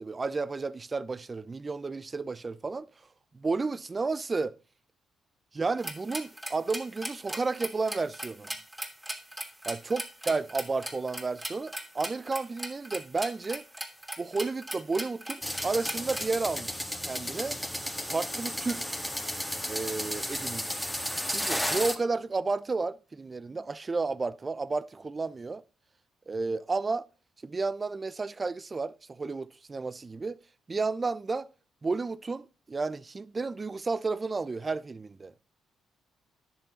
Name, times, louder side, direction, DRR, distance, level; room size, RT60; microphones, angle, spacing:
voice 1, 0.0-2.9 3.3-4.5 5.5-8.5 9.6-13.7 14.2-17.6 18.1-18.9 19.7-20.8 21.3-25.6 26.3-27.0 27.4-30.4 30.7-31.5 31.8-35.3, right 3 dB, 35° right, 0.7 m, -32 dB
sound 1, 5.8-16.3, right 1 dB, 15° right, 3.0 m, -38 dB
sound 2, 15.4-21.9, equal, 5° left, 1.8 m, -33 dB
10.0 x 6.9 x 5.7 m
hypercardioid pair, 50°, 0 cm